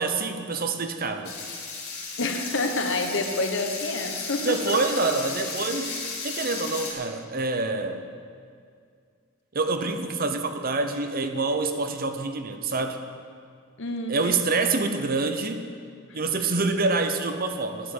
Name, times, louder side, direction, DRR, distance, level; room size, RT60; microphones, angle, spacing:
voice 1, 0.0-1.4 4.4-5.9 6.2-8.0 9.5-13.1 14.1-15.6 16.1-17.9, right 3 dB, 45° right, 7 dB, 0.8 m, -26 dB
sound 1, 1.2-6.9, left 4 dB, 80° left, 2.6 m, -34 dB
voice 2, 2.2-4.8 13.8-14.3 16.1-16.2, left 2 dB, 60° left, 4 dB, 1.3 m, -28 dB
10.0 x 7.4 x 9.5 m, 2.2 s
head